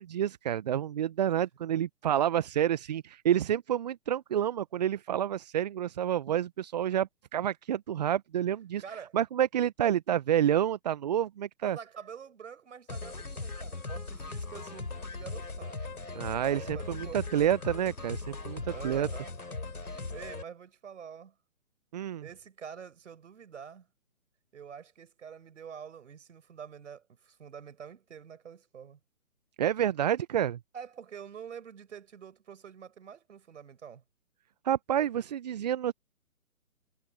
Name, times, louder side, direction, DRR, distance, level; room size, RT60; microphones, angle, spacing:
voice 1, 0.0-8.8 9.1-11.8 16.2-19.1 21.9-22.3 29.6-30.6 34.6-35.9, right 10 dB, 30° right, 0.9 m, -29 dB
voice 2, 8.8-9.2 11.6-15.8 16.4-17.3 18.6-19.3 20.1-21.4 22.2-23.9 24.5-29.0 30.7-34.0, right 7 dB, 55° right, 5.4 m, -46 dB
sound 1, 12.9-20.4, left 3 dB, 85° left, 4.2 m, -39 dB
figure-of-eight pair, 140°, 43 cm